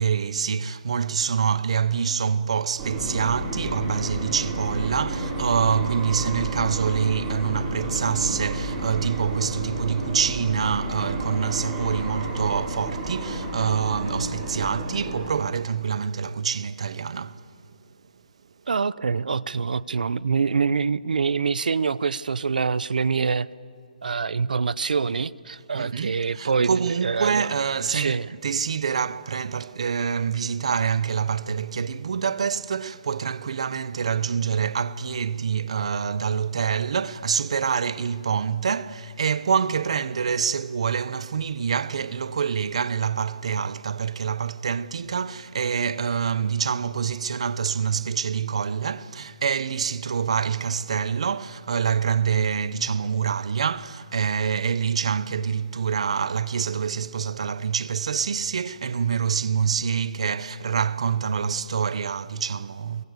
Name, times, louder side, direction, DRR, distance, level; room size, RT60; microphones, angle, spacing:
voice 1, 0.0-17.4 25.7-63.0, right 7 dB, 45° right, 0.7 m, -26 dB
sound 1, 2.8-15.3, right 1 dB, 15° right, 4.0 m, -31 dB
voice 2, 18.7-23.5 24.0-27.5 27.9-28.3, right 5 dB, 80° right, 0.7 m, -25 dB
24.0 x 23.0 x 8.0 m
hypercardioid pair, 180°, 4 cm